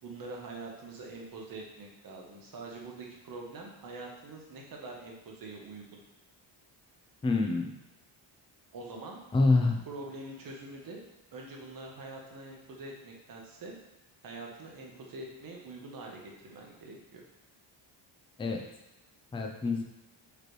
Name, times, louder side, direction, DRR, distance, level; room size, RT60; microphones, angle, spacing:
voice 1, 0.0-6.0 8.7-9.2 9.9-11.0 11.3-13.7 14.2-17.2, right 2 dB, 45° right, 0 dB, 1.0 m, -44 dB
voice 2, 7.2-7.7 9.3-9.8 18.4-18.6 19.3-19.8, left 3 dB, 15° left, 2 dB, 0.3 m, -26 dB
5.0 x 3.2 x 3.1 m, 0.93 s
cardioid pair, 150°, 46 cm